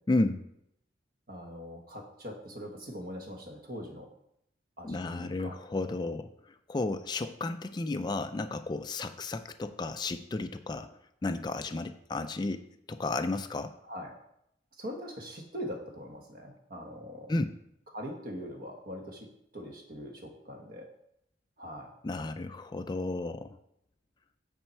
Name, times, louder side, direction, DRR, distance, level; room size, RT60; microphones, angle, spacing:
voice 1, 0.1-0.4 4.8-6.3 6.7-10.9 11.2-13.7 17.3-17.6 22.0-23.6, left 2 dB, 25° left, 8 dB, 0.3 m, -33 dB
voice 2, 1.3-4.1 4.8-5.5 13.9-14.1 14.8-17.3 17.9-20.9 21.6-21.9, equal, 50° right, 2 dB, 1.4 m, -42 dB
8.9 x 4.4 x 4.4 m, 0.76 s
head